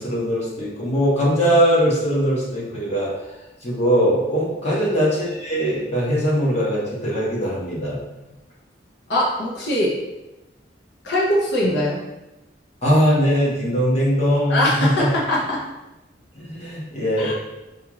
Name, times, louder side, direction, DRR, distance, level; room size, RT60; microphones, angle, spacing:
voice 1, 0.0-3.1 3.6-7.9 12.8-15.1 16.3-17.3, equal, 40° left, -6 dB, 1.1 m, -20 dB
voice 2, 9.1-9.9 11.0-12.0 14.5-15.6 17.2-17.3, left 1 dB, 70° left, -4 dB, 0.7 m, -21 dB
4.2 x 2.4 x 3.0 m, 0.99 s
head